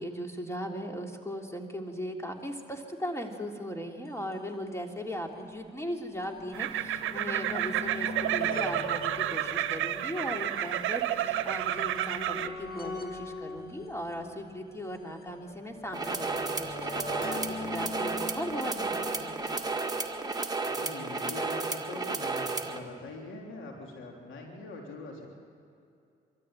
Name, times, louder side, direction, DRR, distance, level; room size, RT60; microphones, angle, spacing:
voice 1, 0.0-19.6, equal, 15° left, 2 dB, 3.2 m, -38 dB
sound 1, 4.1-4.2 4.3-4.4 5.3-20.5 21.5-21.6 21.8-21.9, left 3 dB, 45° left, 2.5 m, -43 dB
sound 2, 6.5-12.5, right 12 dB, 75° right, 0.8 m, -30 dB
sound 3, 15.9-22.8, right 3 dB, 20° right, 1.8 m, -33 dB
voice 2, 20.7-25.3, left 3 dB, 75° left, 0 dB, 3.6 m, -43 dB
24.0 x 13.5 x 9.1 m, 2.5 s
supercardioid pair, 55°, 21 cm